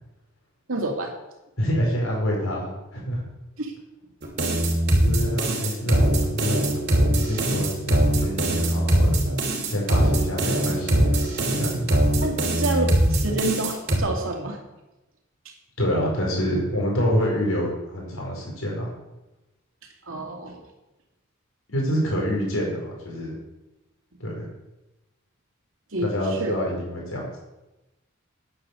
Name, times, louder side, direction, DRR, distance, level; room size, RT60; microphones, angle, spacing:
voice 1, 0.7-1.1 3.6-3.7 12.2-14.6 15.4-15.5 20.1-20.6 22.1-22.2 25.9-26.5, right 2 dB, 75° right, 2 dB, 2.6 m, -28 dB
voice 2, 1.6-3.2 5.0-6.7 7.0-9.1 9.6-11.2 11.6-11.9 15.8-18.9 21.7-23.4 24.2-24.5 26.0-27.2, equal, 80° left, -2 dB, 5.3 m, -26 dB
sound 1, 4.2-14.0, right 1 dB, 50° right, 3.0 m, -21 dB
10.5 x 9.8 x 7.0 m, 1.0 s
head